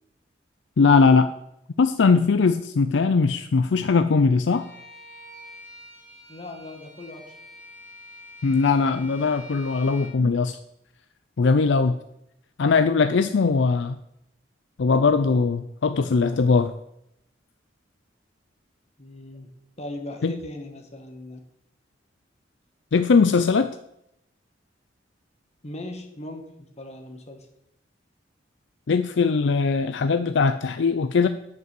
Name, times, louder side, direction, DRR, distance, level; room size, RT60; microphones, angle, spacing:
voice 1, 0.8-1.3 1.8-4.7 8.4-10.6 11.4-11.9 12.6-14.0 14.8-16.7 20.2-20.3 22.9-23.7 28.9-31.3, left 4 dB, 70° left, 10 dB, 0.5 m, -20 dB
Bowed string instrument, 4.5-10.2, left 1 dB, 35° right, 4.1 m, -46 dB
voice 2, 6.3-7.4 19.0-21.4 25.6-27.5, left 1 dB, 35° left, 3 dB, 1.7 m, -39 dB
9.5 x 5.4 x 7.6 m, 0.80 s
head